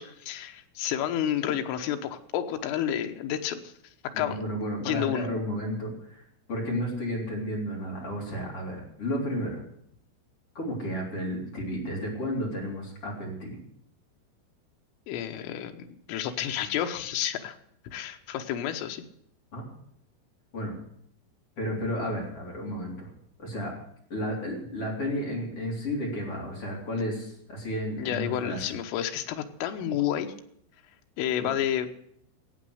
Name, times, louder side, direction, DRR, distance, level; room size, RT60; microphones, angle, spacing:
voice 1, 0.0-3.7 4.2-4.4 4.8-5.3 15.1-17.6 17.9-19.0 28.0-30.3 31.2-31.9, left 10 dB, 85° left, 6 dB, 3.7 m, -30 dB
voice 2, 4.2-6.2 6.5-9.6 10.5-13.6 19.5-19.7 20.5-20.7 21.6-23.1 23.4-23.7 24.1-28.6, equal, 30° left, -2 dB, 4.0 m, -32 dB
15.0 x 8.5 x 7.9 m, 0.69 s
omnidirectional pair, 5.6 m